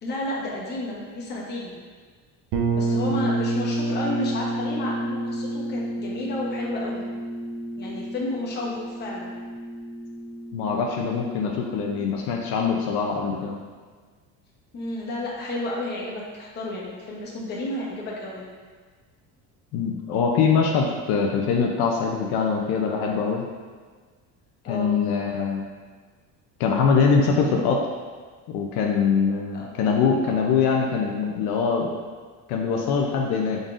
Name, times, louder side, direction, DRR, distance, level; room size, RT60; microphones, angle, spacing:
voice 1, 0.0-1.8 2.7-7.0 7.8-9.3 14.7-18.5 24.6-24.9 29.5-29.7, left 1 dB, 25° left, -5 dB, 0.9 m, -31 dB
sound 1, 2.5-12.2, right 2 dB, 90° right, 0.8 m, -29 dB
voice 2, 10.5-13.6 19.7-23.4 24.7-25.6 26.6-27.8 28.5-31.9 32.5-33.6, left 5 dB, 70° left, 0 dB, 0.6 m, -23 dB
5.2 x 3.9 x 2.4 m, 1.5 s
cardioid pair, 160°, 39 cm